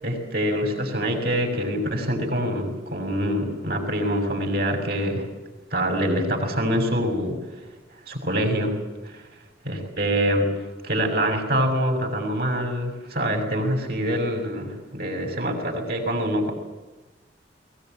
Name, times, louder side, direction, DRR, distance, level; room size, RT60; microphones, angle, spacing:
voice 1, 0.0-5.3 5.7-7.4 8.1-8.8 9.0-9.2 9.6-10.5 10.8-16.5, equal, 55° right, 4 dB, 6.5 m, -25 dB
21.0 x 20.0 x 9.1 m, 1.2 s
head